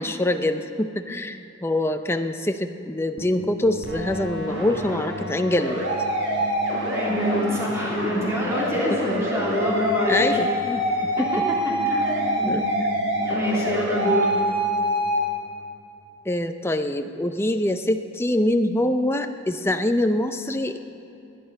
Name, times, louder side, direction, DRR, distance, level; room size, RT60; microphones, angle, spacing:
voice 1, 0.0-5.8 8.9-9.0 10.1-11.5 12.5-13.1 16.3-20.8, left 1 dB, 10° left, 7 dB, 0.5 m, -25 dB
sound 1, 3.2-16.3, left 2 dB, 85° left, 1.2 m, -39 dB
sound 2, 3.8-15.2, right 1 dB, 65° right, 4.0 m, -26 dB
voice 2, 6.9-10.3 11.2-12.5 13.2-14.3, left 1 dB, 15° right, -5 dB, 3.0 m, -26 dB
19.0 x 10.0 x 5.3 m, 2.9 s
head